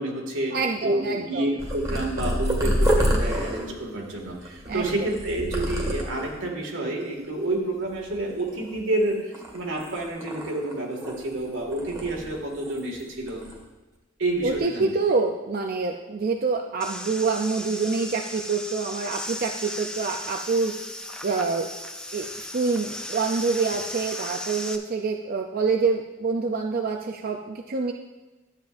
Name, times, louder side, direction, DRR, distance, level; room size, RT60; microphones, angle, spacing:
voice 1, 0.0-13.4 14.2-14.9, right 1 dB, 85° right, 0 dB, 2.0 m, -29 dB
voice 2, 0.5-1.4 4.7-4.9 14.4-20.8 21.2-21.7 22.1-27.9, right 4 dB, 50° right, 2 dB, 0.5 m, -26 dB
Purr, 1.6-6.4 7.0-7.5 7.7-8.9 9.3-11.4 11.7-13.0 13.3-13.6 14.2-14.6, equal, 15° right, 1.7 m, -28 dB
sound 1, 16.8-24.8, left 1 dB, 5° left, 0.5 m, -36 dB
12.5 x 8.9 x 2.6 m, 1.1 s
head